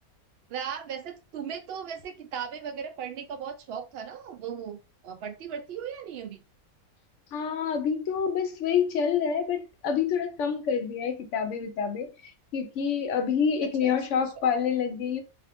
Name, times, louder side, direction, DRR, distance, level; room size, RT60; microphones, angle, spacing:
voice 1, 0.5-6.4 13.8-13.9, right 7 dB, 80° right, 0.5 m, -37 dB
voice 2, 7.3-15.2, left 7 dB, 65° left, 0.9 m, -27 dB
2.7 x 2.4 x 3.5 m
omnidirectional pair, 1.6 m